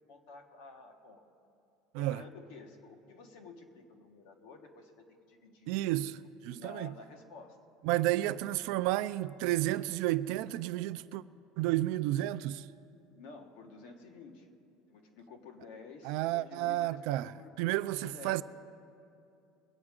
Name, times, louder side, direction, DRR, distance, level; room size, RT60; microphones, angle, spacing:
voice 1, 0.1-1.2 1.9-5.8 6.5-7.6 11.9-12.0 13.0-14.5 14.9-17.5 18.0-18.4, left 4 dB, 60° left, 1.5 m, -51 dB
voice 2, 5.7-6.9 7.8-11.2 11.6-12.7 16.0-17.3 17.6-18.4, right 15 dB, 55° right, 0.3 m, -31 dB
22.5 x 8.7 x 3.7 m
cardioid pair, 175°, 0 cm